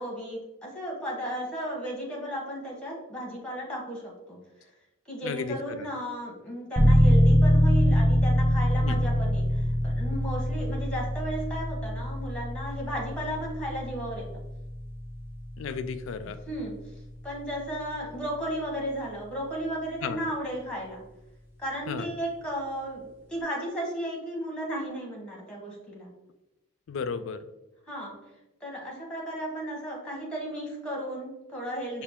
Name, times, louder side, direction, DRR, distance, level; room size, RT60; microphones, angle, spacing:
voice 1, 0.0-4.4 5.1-14.3 16.5-16.7 17.2-21.0 21.6-26.1 27.9-28.2 28.6-32.0, equal, 5° left, -2 dB, 1.0 m, -34 dB
voice 2, 5.2-5.9 8.8-9.0 15.6-16.4 20.0-20.2 21.9-22.1 26.9-27.4, left 5 dB, 70° left, 10 dB, 0.3 m, -34 dB
sound 1, 6.8-17.3, equal, 10° right, 0.6 m, -24 dB
5.7 x 2.4 x 3.5 m, 0.95 s
head